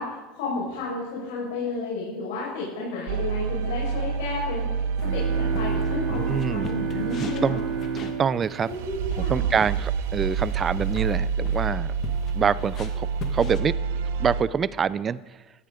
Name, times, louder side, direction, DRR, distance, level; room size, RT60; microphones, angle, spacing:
voice 1, 0.0-7.6 8.6-9.7, left 3 dB, 85° left, -5 dB, 5.0 m, -32 dB
sound 1, 3.1-14.4, right 5 dB, 80° right, 0.9 m, -28 dB
sound 2, 5.0-13.6, left 5 dB, 35° left, 1.5 m, -43 dB
sound 3, 5.0-9.7, right 6 dB, 60° right, 2.2 m, -32 dB
voice 2, 6.1-6.7 7.2-7.6 8.0-8.7 9.2-11.9 12.3-13.1 13.3-13.8 14.2-15.2, right 7 dB, 25° right, 18 dB, 0.4 m, -25 dB
17.0 x 14.0 x 3.8 m, 1.2 s
supercardioid pair, 145°, 0 cm